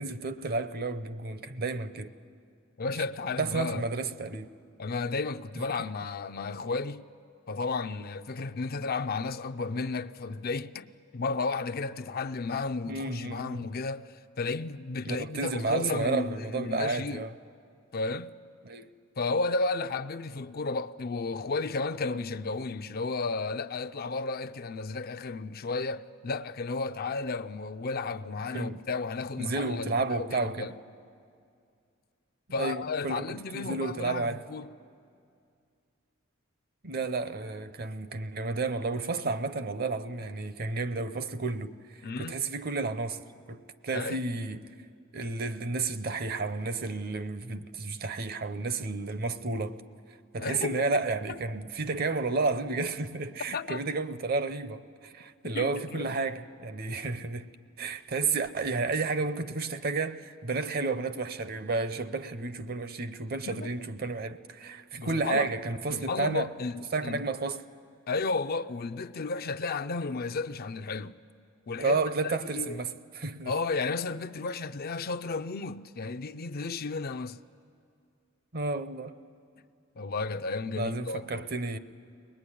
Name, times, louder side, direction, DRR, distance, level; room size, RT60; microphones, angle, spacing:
voice 1, 0.0-2.1 3.4-4.5 12.9-13.7 15.1-17.3 18.6-18.9 28.5-28.8 29.4-30.7 32.6-34.4 36.8-41.7 42.2-43.2 43.5-44.6 45.1-49.8 50.3-57.5 57.8-66.5 66.9-67.6 71.8-73.5 78.5-79.2 80.8-81.8, right 3 dB, 50° right, 0.8 m, -31 dB
voice 2, 2.8-3.8 4.8-7.0 7.5-17.3 17.9-18.3 19.2-30.8 32.5-34.7 42.0-42.4 43.9-44.2 50.4-50.9 51.3-51.4 53.5-53.8 55.5-56.1 63.4-63.7 64.9-65.5 65.9-67.2 68.1-71.2 71.7-72.0 72.2-72.8 73.5-77.4 80.0-81.5, left 3 dB, 50° left, 0.5 m, -33 dB
23.0 x 20.5 x 10.0 m
head